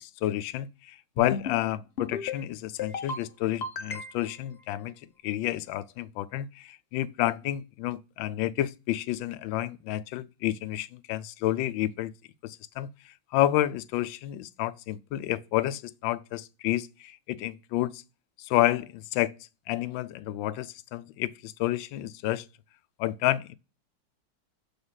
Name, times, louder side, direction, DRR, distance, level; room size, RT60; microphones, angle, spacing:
voice 1, 0.0-4.9 5.2-12.1 12.4-12.9 13.3-18.0 18.4-19.3 19.7-22.5 23.0-23.6, left 14 dB, 80° left, 1.3 m, -30 dB
sound 1, 1.2-1.6 2.0-2.4 2.8-3.2 3.6-4.4, left 5 dB, 55° left, 0.7 m, -34 dB
7.1 x 3.5 x 5.6 m
omnidirectional pair, 2.1 m